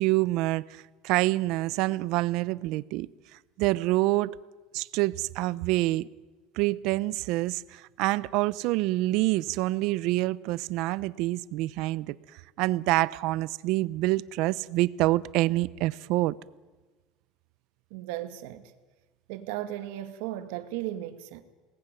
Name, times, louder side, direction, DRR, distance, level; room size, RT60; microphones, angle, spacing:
voice 1, 0.0-3.1 3.6-4.4 4.7-6.1 6.5-16.4, right 18 dB, 60° right, 0.7 m, -27 dB
voice 2, 17.9-18.6 19.3-21.4, right 13 dB, 85° right, 2.2 m, -36 dB
28.5 x 19.5 x 9.2 m
cardioid pair, 155°, 0 cm